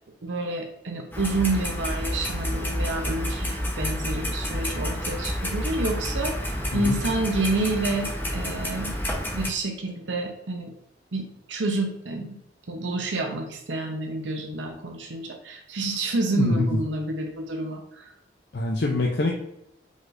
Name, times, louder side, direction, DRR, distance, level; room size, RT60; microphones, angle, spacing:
voice 1, 0.2-10.7 11.1-12.4 12.7-18.1, right 2 dB, 85° right, 3 dB, 0.7 m, -29 dB
Clock, 1.1-9.5, equal, 10° left, 0.9 m, -29 dB
voice 2, 16.3-16.8 18.5-19.3, left 2 dB, 65° left, 0 dB, 0.5 m, -24 dB
5.1 x 4.0 x 2.5 m, 0.81 s
head